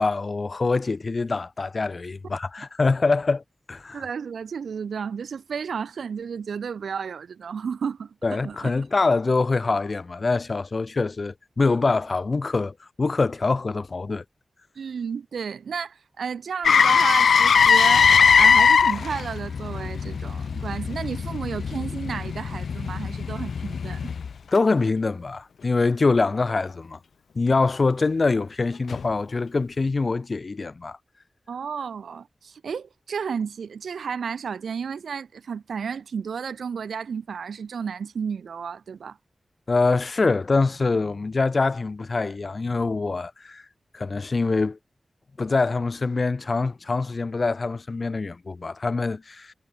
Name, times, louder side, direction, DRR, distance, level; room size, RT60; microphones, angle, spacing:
voice 1, 0.0-3.4 3.7-4.0 8.2-14.2 24.5-27.0 27.3-31.0 39.7-43.6 43.9-44.8 45.4-49.5, left 3 dB, 55° left, 1.1 m, -24 dB
voice 2, 3.9-8.7 14.8-24.1 31.5-39.2, right 6 dB, 90° right, 4.3 m, -32 dB
Motor vehicle (road), 16.6-24.6 28.9-29.0, left 6 dB, 85° left, 1.2 m, -20 dB
cardioid pair, 45°, 0 cm